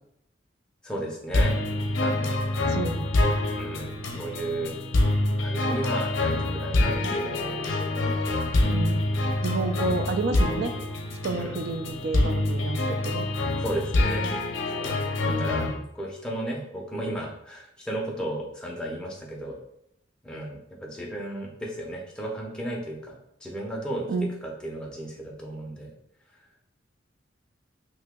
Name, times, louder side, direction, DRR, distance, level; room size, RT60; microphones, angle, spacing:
voice 1, 0.8-1.6 2.0-2.6 3.6-4.7 5.4-8.2 11.3-11.6 13.6-14.3 14.8-15.0 15.3-15.7 15.9-19.6 20.2-24.1 24.4-25.9, right 1 dB, 5° left, -2 dB, 0.5 m, -34 dB
sound 1, 1.3-15.7, left 2 dB, 80° left, 0.5 m, -26 dB
voice 2, 2.7-3.1 8.7-9.0 9.4-10.7 11.2-13.3 15.2-15.7 24.1-24.3, right 3 dB, 55° right, 8 dB, 0.3 m, -30 dB
2.8 x 2.7 x 3.5 m, 0.77 s
head